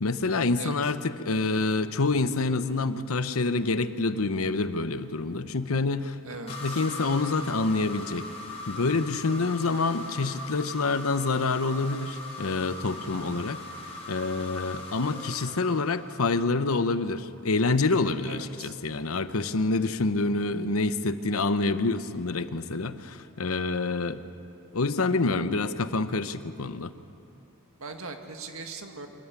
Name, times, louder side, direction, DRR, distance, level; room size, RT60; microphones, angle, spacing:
voice 1, 0.0-6.2 6.6-8.3 8.7-13.6 14.1-24.2 24.7-26.9, left 3 dB, 80° left, 12 dB, 0.9 m, -27 dB
voice 2, 0.6-0.9 6.2-6.8 18.2-18.8 27.8-29.1, right 3 dB, 75° right, 5 dB, 1.9 m, -40 dB
sound 1, 6.5-16.4, left 2 dB, 30° left, 4.5 m, -40 dB
24.0 x 14.0 x 9.8 m, 2.7 s
head